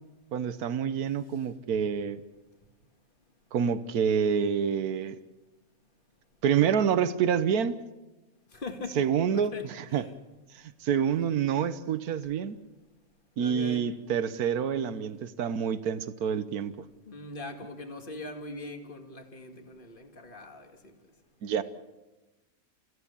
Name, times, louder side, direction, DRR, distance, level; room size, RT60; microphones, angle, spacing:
voice 1, 0.3-2.2 3.5-5.2 6.4-7.8 9.0-10.1 10.8-12.6 13.4-16.7 21.4-21.6, right 7 dB, 90° right, 1.4 m, -27 dB
voice 2, 8.5-10.1 13.4-13.9 17.1-20.9, left 2 dB, 35° left, 2.1 m, -42 dB
30.0 x 15.5 x 7.0 m
omnidirectional pair, 1.5 m